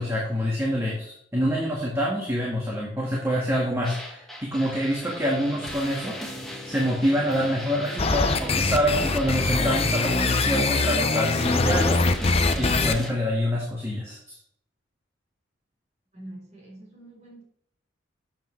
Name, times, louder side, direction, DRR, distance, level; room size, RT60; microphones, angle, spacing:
voice 1, 0.0-6.2 6.6-12.0 12.5-14.2, equal, 15° right, -3 dB, 1.7 m, -26 dB
sound 1, 3.8-13.1, left 1 dB, ahead, 1.7 m, -37 dB
sound 2, 8.0-12.9, left 3 dB, 30° left, 0.6 m, -23 dB
voice 2, 16.1-17.4, right 1 dB, 35° right, -3 dB, 4.3 m, -44 dB
11.5 x 7.4 x 3.3 m, 0.70 s
head